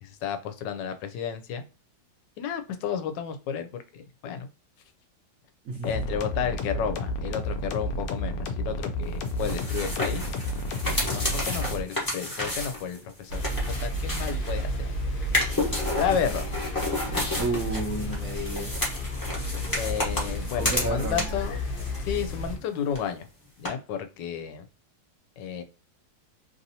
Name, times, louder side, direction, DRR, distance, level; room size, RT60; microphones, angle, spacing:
voice 1, 0.0-1.6 2.4-4.5 5.8-10.3 11.0-13.4 13.8-14.9 16.0-16.5 19.8-21.6 22.0-23.3 23.6-24.7 25.4-25.6, left 8 dB, 85° left, 8 dB, 1.2 m, -32 dB
voice 2, 5.6-6.0 17.3-18.9 20.6-21.3, right 2 dB, 60° right, 0 dB, 1.2 m, -31 dB
sound 1, 5.8-11.8, left 1 dB, 65° left, 1.0 m, -31 dB
sound 2, 9.3-14.8 15.2-21.5 21.8-22.6 22.9-23.0 23.7-23.8, left 1 dB, 15° left, 0.9 m, -31 dB
sound 3, 13.3-22.6, left 1 dB, 50° left, 0.7 m, -32 dB
3.3 x 2.7 x 2.7 m, 0.33 s
omnidirectional pair, 1.9 m